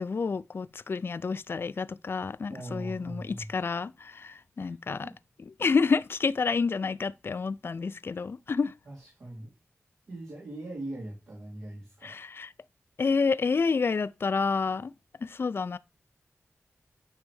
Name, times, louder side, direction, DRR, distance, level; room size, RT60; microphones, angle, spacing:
voice 1, 0.0-5.1 5.6-8.7 12.0-12.5 13.0-14.9 15.2-15.8, left 4 dB, 55° left, 0.3 m, -29 dB
voice 2, 2.5-3.5 4.6-5.2 8.9-9.5 10.1-12.2, right 1 dB, 85° right, 2.6 m, -41 dB
9.5 x 3.3 x 3.1 m
wide cardioid pair, 60°, 5 cm